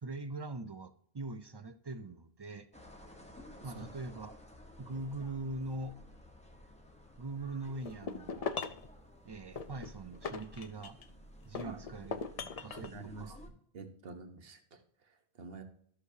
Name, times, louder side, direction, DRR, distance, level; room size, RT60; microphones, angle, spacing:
voice 1, 0.0-2.7 3.6-4.3 4.8-6.0 7.2-8.5 9.2-11.0 11.4-13.4, right 2 dB, 40° right, 11 dB, 0.3 m, -42 dB
sound 1, 2.7-13.5, equal, 5° left, 1.1 m, -54 dB
sound 2, 7.8-8.9 9.6-11.1 11.5-12.9, left 5 dB, 45° left, 0.6 m, -40 dB
voice 2, 12.7-13.3 13.7-15.6, right 4 dB, 65° right, 7 dB, 1.3 m, -48 dB
13.5 x 6.5 x 2.7 m, 0.65 s
omnidirectional pair, 1.1 m